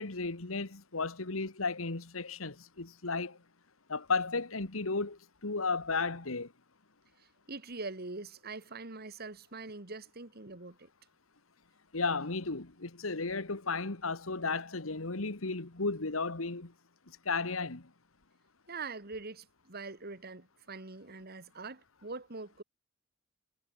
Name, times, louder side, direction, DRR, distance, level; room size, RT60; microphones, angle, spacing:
voice 1, 0.0-3.4 3.9-6.5 11.9-16.7 17.3-17.9, left 4 dB, 90° left, 1.9 m, -34 dB
voice 2, 7.2-10.9 18.7-22.6, right 3 dB, 50° right, 2.4 m, -43 dB
head